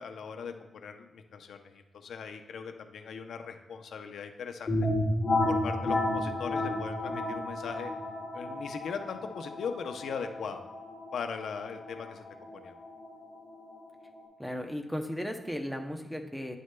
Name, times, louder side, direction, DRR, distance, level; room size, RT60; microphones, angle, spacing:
voice 1, 0.0-4.7 5.4-7.9 8.3-10.6 11.1-12.2 12.5-12.7, left 6 dB, 85° left, 6 dB, 0.6 m, -39 dB
sound 1, 4.7-14.2, left 1 dB, 40° left, 2.2 m, -32 dB
voice 2, 14.4-16.6, equal, ahead, 5 dB, 0.6 m, -35 dB
9.6 x 6.3 x 2.2 m, 1.2 s
wide cardioid pair, 155°, 0 cm